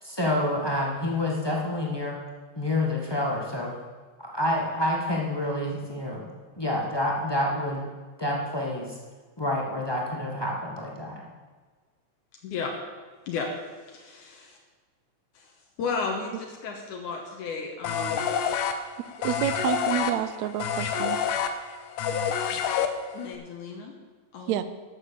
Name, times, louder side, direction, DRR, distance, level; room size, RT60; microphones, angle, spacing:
voice 1, 0.0-2.2 2.5-3.7 4.2-6.3 6.6-7.9 8.2-9.0 9.4-11.3, left 1 dB, 25° left, -2 dB, 0.5 m, -28 dB
voice 2, 13.8-14.6 15.3-15.5 15.8-18.3 23.1-23.9 24.3-24.6, left 5 dB, 75° left, 1 dB, 2.6 m, -34 dB
sound 1, 17.8-23.3, left 7 dB, 90° left, 2.4 m, -28 dB
voice 3, 19.2-21.2 24.5-24.6, right 11 dB, 80° right, 12 dB, 1.6 m, -28 dB
12.5 x 7.2 x 7.0 m, 1.4 s
omnidirectional pair, 3.6 m